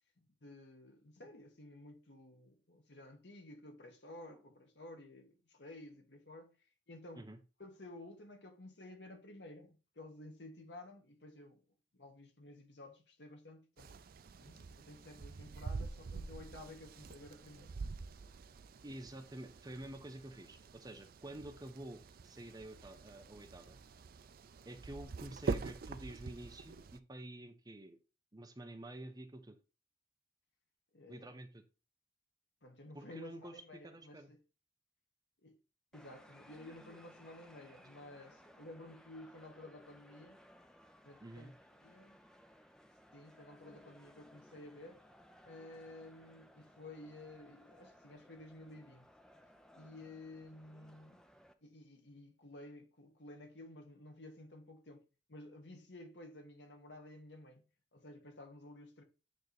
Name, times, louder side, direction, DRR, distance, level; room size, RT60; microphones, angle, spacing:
voice 1, 0.4-6.5 6.9-7.3 7.6-11.6 11.9-14.0 14.4-17.7 30.9-31.3 32.6-34.4 35.4-35.6 35.9-40.4 41.0-41.5 41.8-42.2 43.1-45.0 45.4-49.1 49.7-51.2 51.6-59.0, left 1 dB, 75° left, 1.5 m, -53 dB
sound 1, 13.8-27.0, right 4 dB, 55° right, 0.4 m, -45 dB
voice 2, 18.8-23.8 24.6-28.0 28.3-29.6 31.1-31.6 32.9-34.3 41.2-41.5, right 1 dB, 20° right, 0.9 m, -49 dB
sound 2, 35.9-51.5, equal, 5° left, 0.6 m, -61 dB
9.1 x 3.2 x 4.0 m
head